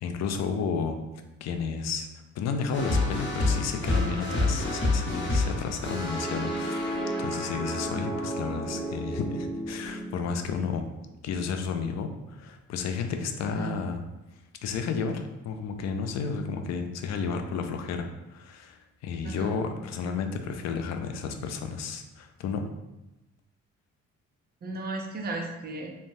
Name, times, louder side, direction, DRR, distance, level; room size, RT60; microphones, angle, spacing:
voice 1, 0.0-1.0 1.4-2.1 2.3-10.9 11.2-14.0 14.6-22.6, left 5 dB, 60° left, 6 dB, 0.4 m, -32 dB
sound 1, 2.7-10.9, left 1 dB, 40° left, 0.9 m, -29 dB
voice 2, 13.4-13.7 19.2-19.5 24.6-25.9, right 2 dB, 30° right, 1 dB, 0.6 m, -35 dB
3.2 x 2.1 x 2.6 m, 0.98 s
cardioid pair, 90°, 30 cm